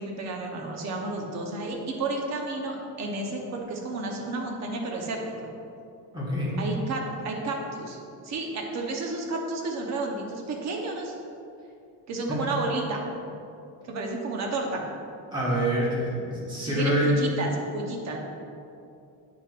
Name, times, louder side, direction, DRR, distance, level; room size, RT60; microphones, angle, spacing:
voice 1, 0.0-5.2 6.6-8.0 8.2-11.1 12.1-13.0 13.8-14.8 16.7-18.2, right 2 dB, 40° right, 0 dB, 1.0 m, -31 dB
voice 2, 6.1-6.5 12.3-12.4 15.3-17.1, equal, 10° right, -7 dB, 1.6 m, -26 dB
8.4 x 7.6 x 2.5 m, 2.6 s
cardioid pair, 175°, 43 cm